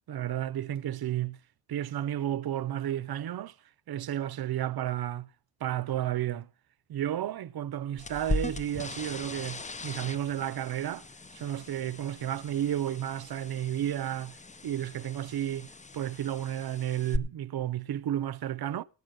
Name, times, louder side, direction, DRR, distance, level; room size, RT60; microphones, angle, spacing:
voice 1, 0.1-1.4 1.7-3.5 3.9-5.3 5.6-6.5 6.9-11.0 11.3-14.4 14.6-18.8, right 11 dB, 85° right, 0.6 m, -32 dB
sound 1, 8.0-17.2, left 2 dB, 20° left, 0.5 m, -39 dB
16.5 x 6.1 x 6.5 m
wide cardioid pair, 85°, 36 cm